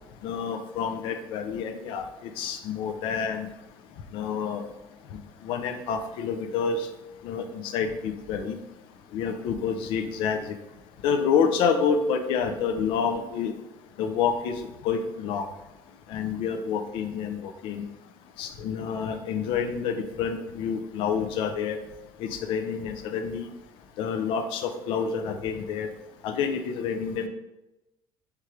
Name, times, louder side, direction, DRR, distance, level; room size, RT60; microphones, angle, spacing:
voice 1, 0.2-3.5 4.1-4.6 5.4-6.9 7.2-8.5 9.1-10.6 11.0-13.5 14.0-15.4 16.1-17.8 18.4-21.8 22.2-23.5 24.0-25.9 26.2-27.3, left 6 dB, 70° left, 7 dB, 0.5 m, -28 dB
4.5 x 3.6 x 3.1 m, 0.96 s
cardioid pair, 170°, 9 cm